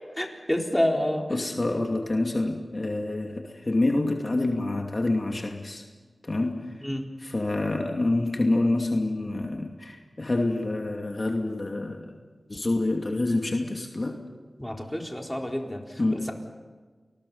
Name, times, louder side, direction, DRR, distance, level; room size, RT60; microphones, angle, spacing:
voice 1, 0.2-1.3 6.8-7.1 14.6-16.3, left 1 dB, 10° left, 1 dB, 4.1 m, -28 dB
voice 2, 1.3-5.8 6.2-6.8 7.2-12.2 12.5-14.2 16.0-16.3, left 2 dB, 50° left, 2 dB, 2.6 m, -27 dB
29.5 x 20.5 x 5.6 m, 1.4 s
cardioid pair, 45°, 0 cm